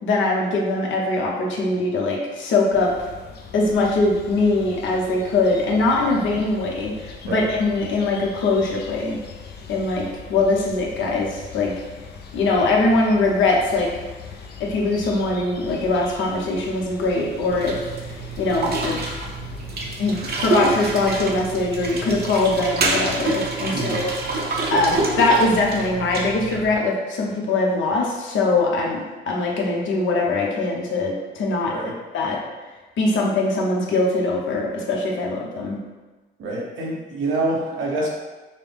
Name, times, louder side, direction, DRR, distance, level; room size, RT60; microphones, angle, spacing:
voice 1, 0.0-3.0 3.5-9.2 9.7-11.7 12.3-14.0 14.6-19.0 20.0-24.4 24.7-31.8 32.1-32.4 33.0-35.8, left 2 dB, 75° left, -1 dB, 0.9 m, -22 dB
sound 1, 2.7-22.4, left 5 dB, 55° left, 0.5 m, -40 dB
sound 2, 17.5-26.7, right 3 dB, 55° right, 0.7 m, -27 dB
voice 2, 36.4-38.1, right 2 dB, 75° right, -2 dB, 1.0 m, -26 dB
5.3 x 2.0 x 3.4 m, 1.2 s
cardioid pair, 90°, 20 cm